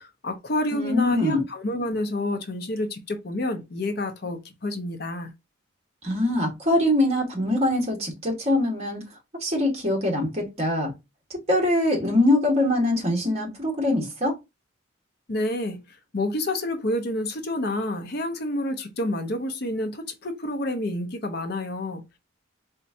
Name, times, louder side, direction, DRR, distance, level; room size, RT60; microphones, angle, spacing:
voice 1, 0.0-5.3 15.3-15.8 16.1-22.2, left 1 dB, 50° left, 0.6 m, -29 dB
voice 2, 0.7-1.4 6.0-9.0 9.4-10.9 11.3-14.3, left 1 dB, 30° right, 1.5 m, -23 dB
4.2 x 3.6 x 2.7 m
head